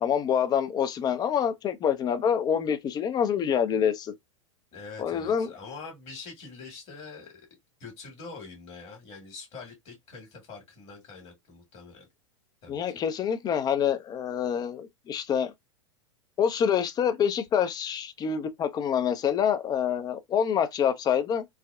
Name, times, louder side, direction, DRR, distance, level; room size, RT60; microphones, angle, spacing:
voice 1, 0.0-4.1 5.0-5.5 12.7-15.5 16.4-21.4, left 8 dB, 25° left, 0.5 m, -26 dB
voice 2, 4.7-7.5 7.8-12.0 12.6-13.0, left 4 dB, 40° left, 1.5 m, -44 dB
3.4 x 2.1 x 2.3 m
figure-of-eight pair, 90°, 16 cm